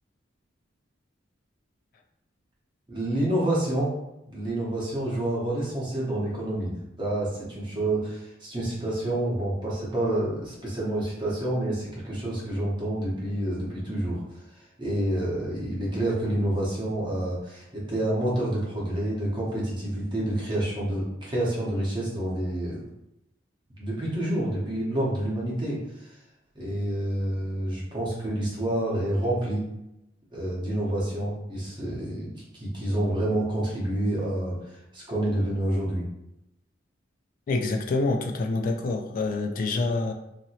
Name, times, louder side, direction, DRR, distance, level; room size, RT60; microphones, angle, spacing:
voice 1, 2.9-3.9 4.3-14.2 14.5-22.8 23.8-26.2 26.5-29.6 30.3-36.1, right 1 dB, 25° right, -6 dB, 0.9 m, -28 dB
voice 2, 37.5-40.1, left 3 dB, 45° left, 3 dB, 0.3 m, -26 dB
2.9 x 2.7 x 2.8 m, 0.88 s
head